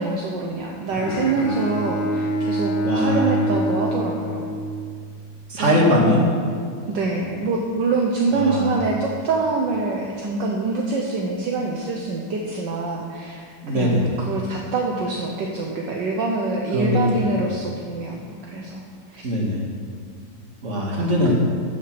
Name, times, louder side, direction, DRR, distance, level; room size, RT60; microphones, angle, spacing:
voice 1, 0.0-4.4 5.6-6.2 6.9-18.8 19.1-19.3 21.2-21.3, right 3 dB, 65° right, 0 dB, 1.5 m, -25 dB
Bowed string instrument, 0.9-5.1, equal, 80° left, 1.7 m, -25 dB
voice 2, 2.8-3.4 5.5-6.3 8.3-8.8 13.6-14.2 16.7-17.4 19.2-19.6 20.6-21.3, left 1 dB, 35° right, -2 dB, 2.1 m, -21 dB
15.0 x 6.4 x 6.0 m, 2.2 s
omnidirectional pair, 2.2 m